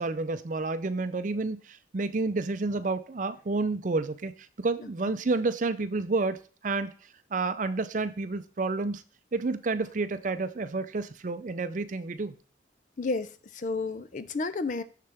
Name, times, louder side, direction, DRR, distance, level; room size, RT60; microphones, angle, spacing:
voice 1, 0.0-4.3 4.6-6.4 6.6-6.9 7.3-9.0 9.3-12.4, right 3 dB, 45° right, 0.5 m, -30 dB
voice 2, 4.8-5.1 13.0-14.8, left 3 dB, 45° left, 0.5 m, -32 dB
6.8 x 6.6 x 3.4 m
head